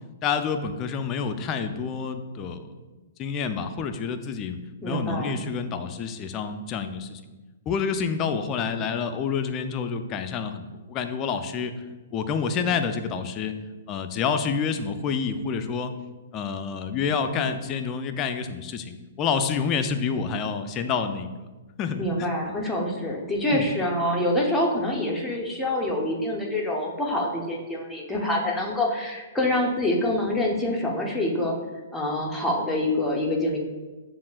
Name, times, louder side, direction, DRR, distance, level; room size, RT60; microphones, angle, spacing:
voice 1, 0.2-2.7 3.2-7.2 7.7-11.7 12.1-13.5 13.9-15.9 16.3-21.3 21.8-22.0 22.4-22.5 23.5-23.7, left 6 dB, 30° left, 8 dB, 0.3 m, -28 dB
voice 2, 4.8-5.4 22.0-31.6 31.9-33.6, left 1 dB, 5° left, -3 dB, 0.7 m, -26 dB
7.2 x 2.4 x 2.3 m, 1.2 s
hypercardioid pair, 130°, 0 cm